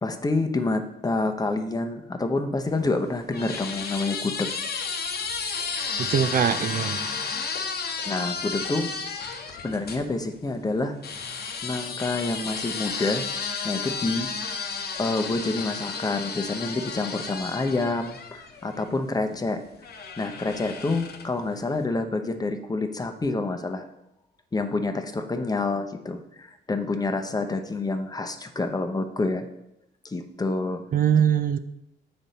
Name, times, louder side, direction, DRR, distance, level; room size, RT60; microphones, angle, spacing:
voice 1, 0.0-4.5 8.0-8.9 9.5-11.0 11.2-13.3 13.6-14.3 14.9-19.6 20.2-23.9 24.5-29.4 30.0-30.8, left 3 dB, 20° left, 6 dB, 0.7 m, -28 dB
sound 1, 2.7-10.0 11.0-18.9 19.8-21.4, left 5 dB, 55° left, 0.9 m, -33 dB
voice 2, 6.0-7.0 30.9-31.6, right 8 dB, 45° right, 9 dB, 0.4 m, -22 dB
7.5 x 5.2 x 4.1 m, 0.84 s
cardioid pair, 90°, 20 cm